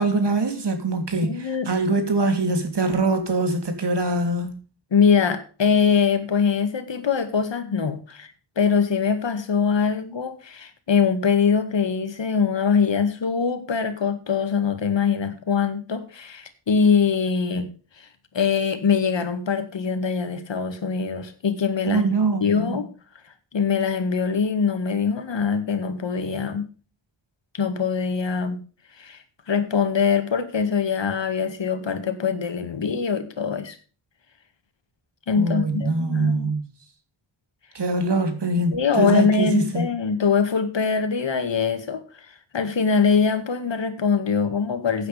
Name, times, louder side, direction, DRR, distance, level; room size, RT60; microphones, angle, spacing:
voice 1, 0.0-1.3 1.7-4.5 21.9-22.8 35.3-36.6 37.7-39.9, right 2 dB, 60° right, 3.2 m, -23 dB
voice 2, 1.2-1.7 4.9-17.7 18.0-18.1 18.3-22.9 23.5-26.7 27.5-28.6 29.0-33.8 35.3-36.5 38.7-45.1, left 6 dB, 65° left, 2.1 m, -23 dB
15.5 x 9.2 x 3.4 m
wide cardioid pair, 115°, 47 cm